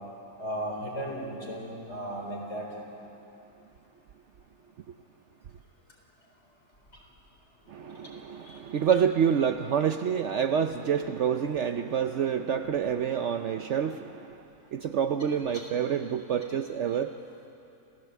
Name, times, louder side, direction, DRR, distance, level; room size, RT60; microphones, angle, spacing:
voice 1, 0.4-2.7 8.5-8.6 15.5-15.6, right 1 dB, 45° left, -1 dB, 4.3 m, -35 dB
voice 2, 7.7-14.4 14.7-17.1, right 8 dB, 60° right, 8 dB, 0.8 m, -27 dB
27.5 x 16.0 x 8.2 m, 2.8 s
omnidirectional pair, 1.6 m